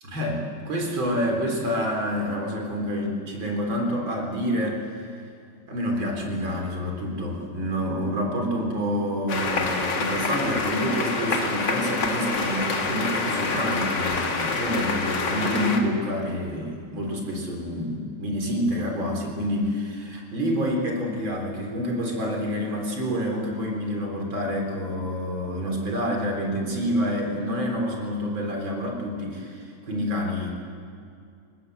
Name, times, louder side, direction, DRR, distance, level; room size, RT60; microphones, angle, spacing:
voice 1, 0.0-5.0 5.7-30.5, equal, 30° right, 1 dB, 4.0 m, -28 dB
sound 1, 9.3-15.8, left 4 dB, 45° left, 1.4 m, -26 dB
29.0 x 19.0 x 8.0 m, 2.4 s
omnidirectional pair, 5.0 m